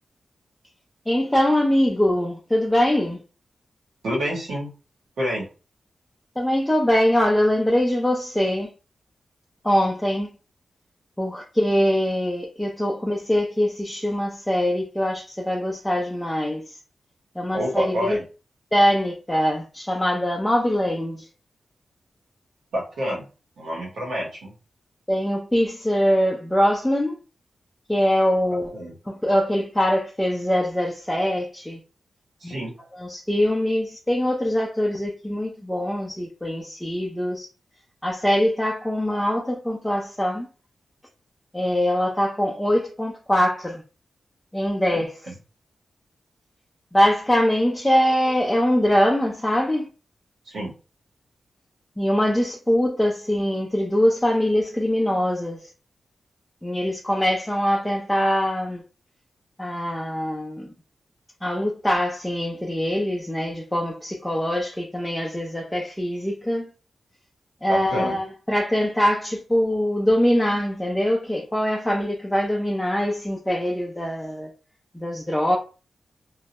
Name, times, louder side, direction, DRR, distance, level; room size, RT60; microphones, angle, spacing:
voice 1, 1.1-3.2 6.4-8.7 9.6-10.3 11.2-16.8 17.4-18.2 18.7-21.3 25.1-27.2 27.9-28.7 29.1-31.8 32.4-32.5 32.9-37.5 38.0-40.5 41.5-43.8 44.5-45.1 46.9-49.9 52.0-55.7 56.6-58.8 59.6-60.7 61.4-66.7 67.6-74.5 74.9-75.6, equal, 10° left, 0.5 m, -23 dB
voice 2, 4.0-4.7 5.2-5.5 17.5-18.2 22.7-23.3 23.6-24.5 28.7-28.9 32.4-32.8 44.9-45.0 50.5-50.7 67.7-68.2, equal, 80° right, 1.0 m, -28 dB
2.2 x 2.0 x 2.8 m
cardioid pair, 55°, 0 cm